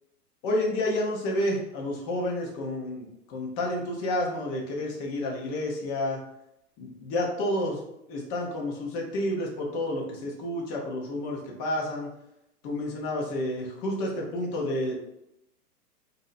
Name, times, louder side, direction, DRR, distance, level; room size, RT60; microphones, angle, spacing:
voice 1, 0.4-6.2 6.8-7.8 8.1-12.1 12.6-15.0, left 1 dB, 30° left, -1 dB, 0.8 m, -30 dB
2.7 x 2.1 x 4.0 m, 0.85 s
hypercardioid pair, 130°, 48 cm